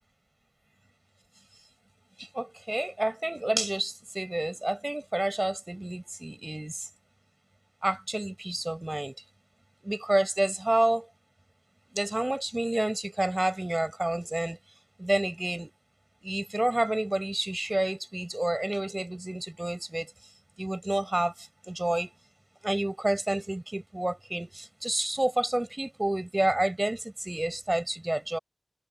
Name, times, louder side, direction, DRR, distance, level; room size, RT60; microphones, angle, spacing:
voice 1, 2.2-6.9 7.8-9.1 9.8-11.1 11.9-14.6 15.0-15.7 16.2-20.1 20.6-22.1 22.6-28.4, right 1 dB, 35° right, 5.1 m, -29 dB
wide cardioid pair, 55°, 0 cm